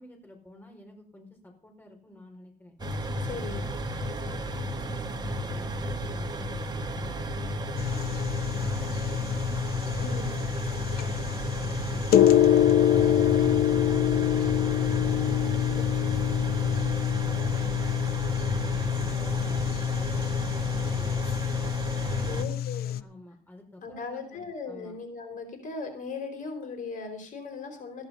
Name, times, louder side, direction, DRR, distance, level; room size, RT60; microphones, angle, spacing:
voice 1, 0.0-2.8 3.3-9.2 9.8-13.9 16.2-18.0 18.4-21.2 22.0-22.5 23.0-25.0, left 1 dB, 10° left, 1 dB, 4.8 m, -50 dB
sound 1, 2.8-22.4, equal, 25° right, 2.0 m, -33 dB
voice 2, 3.2-3.7 9.9-10.3 15.7-15.9 16.5-16.6 22.2-23.0 23.8-28.1, left 4 dB, 50° left, 5 dB, 4.5 m, -38 dB
sound 2, 7.8-23.0, left 11 dB, 65° left, 0.8 m, -26 dB
15.0 x 11.0 x 5.5 m, 0.43 s
cardioid pair, 110°, 17 cm